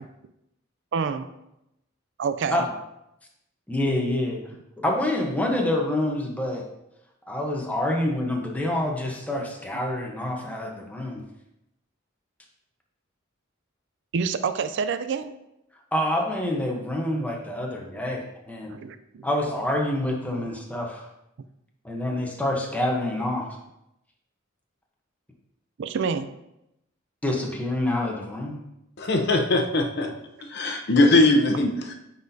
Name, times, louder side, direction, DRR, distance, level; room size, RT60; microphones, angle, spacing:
voice 1, 0.9-1.3 2.2-2.6 14.1-15.3 18.7-19.2 20.4-20.5 25.8-26.3, right 5 dB, 60° right, 11 dB, 0.4 m, -27 dB
voice 2, 3.7-4.4 4.8-6.6 7.3-11.2 15.9-18.8 19.2-21.1 21.8-23.6 27.2-28.6, left 1 dB, 5° left, 0 dB, 0.9 m, -27 dB
voice 3, 29.0-30.1 30.4-31.9, left 2 dB, 55° left, 3 dB, 0.8 m, -21 dB
9.4 x 4.1 x 2.7 m, 0.85 s
head